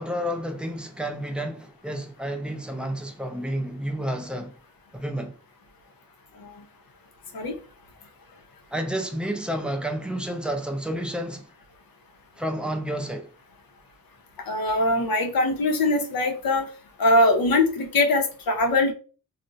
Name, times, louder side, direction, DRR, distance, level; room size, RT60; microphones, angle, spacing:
voice 1, 0.0-4.5 4.9-5.3 8.7-11.5 12.4-13.3, equal, 5° right, 0.4 m, -30 dB
voice 2, 14.5-16.6 17.0-18.9, left 2 dB, 90° left, 0.7 m, -22 dB
2.5 x 2.1 x 3.9 m
wide cardioid pair, 180°, 34 cm